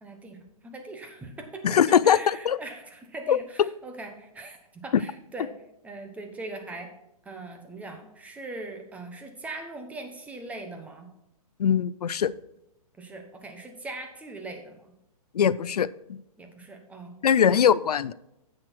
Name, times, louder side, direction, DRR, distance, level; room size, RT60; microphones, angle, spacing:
voice 1, 0.0-5.5 5.8-6.9 7.2-11.1 13.0-14.9 16.4-17.6, right 2 dB, 5° right, 4 dB, 1.2 m, -41 dB
voice 2, 1.6-2.6 3.3-3.4 11.6-12.3 15.3-16.2 17.2-18.1, left 8 dB, 85° left, 19 dB, 0.5 m, -22 dB
9.7 x 7.9 x 4.5 m, 0.85 s
hypercardioid pair, 145°, 19 cm